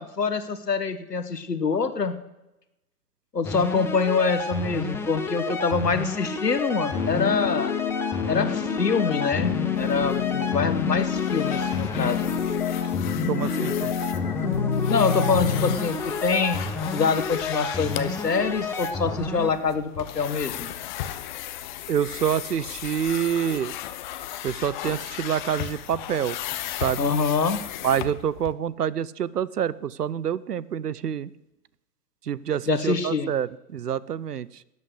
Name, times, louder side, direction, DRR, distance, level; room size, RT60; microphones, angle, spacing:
voice 1, 0.0-2.1 3.3-7.7 8.3-12.4 14.9-16.6 16.9-20.7 27.0-27.6 32.7-33.3, left 5 dB, 85° left, 10 dB, 1.4 m, -25 dB
sound 1, 3.4-19.5, left 3 dB, 5° left, 1.0 m, -31 dB
sound 2, 6.9-15.8, left 8 dB, 65° left, 1.2 m, -28 dB
sound 3, 9.8-28.5, left 12 dB, 30° left, 0.8 m, -37 dB
voice 2, 13.3-13.9 21.9-23.8 24.4-26.4 26.8-27.1 27.8-31.3 32.3-34.5, right 9 dB, 75° right, 21 dB, 0.8 m, -27 dB
13.5 x 8.7 x 8.2 m, 0.94 s
figure-of-eight pair, 115°, 47 cm